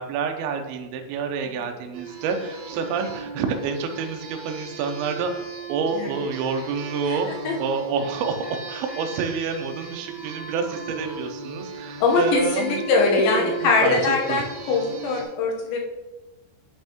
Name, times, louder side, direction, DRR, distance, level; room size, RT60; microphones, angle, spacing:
voice 1, 0.0-12.8 13.3-14.4, right 5 dB, 85° right, 4 dB, 2.3 m, -28 dB
sound 1, 1.9-15.2, right 5 dB, 65° right, 3.1 m, -37 dB
voice 2, 7.1-7.5 12.0-15.8, left 4 dB, 85° left, 0 dB, 3.5 m, -22 dB
9.7 x 5.4 x 3.0 m, 1.1 s
omnidirectional pair, 5.2 m